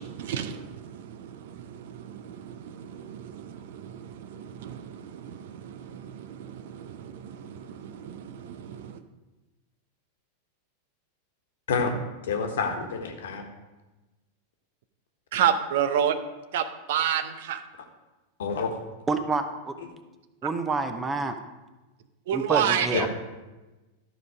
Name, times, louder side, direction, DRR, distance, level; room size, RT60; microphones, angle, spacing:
voice 1, 0.0-9.0 15.3-16.2 16.5-17.6 22.3-23.0, right 9 dB, 55° right, 11 dB, 0.7 m, -30 dB
voice 2, 12.3-13.4 18.4-18.7 22.9-23.1, left 5 dB, 60° left, 4 dB, 1.3 m, -28 dB
voice 3, 19.1-19.7 20.4-21.3 22.3-23.1, right 3 dB, 15° right, 8 dB, 0.8 m, -28 dB
12.5 x 5.3 x 4.9 m, 1.1 s
figure-of-eight pair, 90°, 0 cm